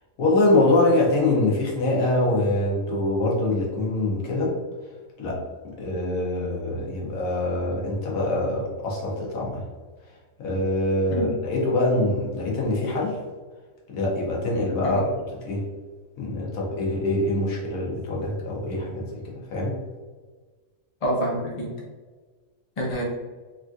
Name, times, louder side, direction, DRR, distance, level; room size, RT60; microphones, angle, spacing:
voice 1, 0.2-4.5 5.2-9.6 10.4-13.2 13.9-15.1 15.4-15.6 16.2-19.8, left 2 dB, 70° left, -3 dB, 1.2 m, -24 dB
voice 2, 21.0-21.7 22.8-23.0, equal, 35° left, -4 dB, 0.6 m, -27 dB
3.4 x 2.6 x 2.3 m, 1.4 s
omnidirectional pair, 1.5 m